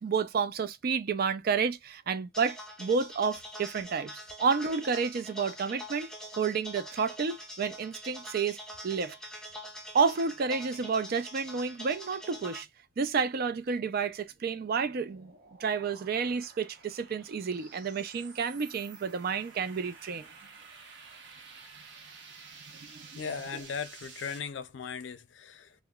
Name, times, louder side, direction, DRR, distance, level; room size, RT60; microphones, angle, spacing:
voice 1, 0.0-8.6 8.8-9.2 9.9-12.7 13.0-15.3 15.6-20.3 22.9-23.3, right 5 dB, 55° right, 0.4 m, -30 dB
sound 1, 2.3-12.6, equal, 5° left, 0.5 m, -44 dB
sound 2, 14.1-24.4, right 5 dB, 70° right, 0.9 m, -52 dB
voice 2, 23.1-25.7, left 6 dB, 75° left, 0.4 m, -38 dB
2.8 x 2.0 x 2.3 m
head